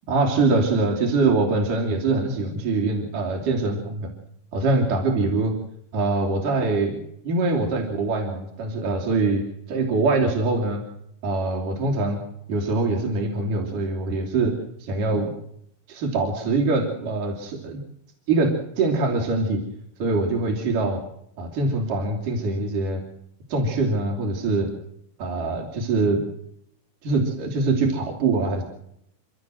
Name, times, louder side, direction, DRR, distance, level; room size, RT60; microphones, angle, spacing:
voice 1, 0.1-4.1 4.5-5.6 5.9-7.0 7.2-10.8 11.2-12.2 12.5-15.3 15.9-17.8 18.3-19.6 20.0-21.0 21.4-23.0 23.5-24.7 25.2-26.2 27.0-28.6, right 3 dB, 65° right, 1 dB, 4.8 m, -23 dB
29.5 x 13.0 x 7.9 m, 0.73 s
omnidirectional pair, 4.0 m